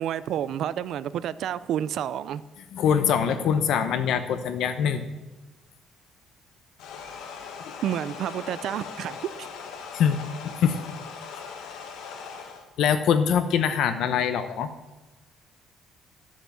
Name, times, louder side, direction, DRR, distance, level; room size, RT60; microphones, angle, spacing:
voice 1, 0.0-2.4 7.8-9.5, right 10 dB, 55° right, 17 dB, 0.4 m, -30 dB
voice 2, 2.7-5.0 9.9-10.2 10.4-10.7 12.8-14.7, left 8 dB, 60° left, 9 dB, 0.7 m, -23 dB
sound 1, 6.8-12.6, left 6 dB, 80° left, 1.5 m, -40 dB
11.5 x 7.4 x 7.1 m, 1.1 s
cardioid pair, 175°, 0 cm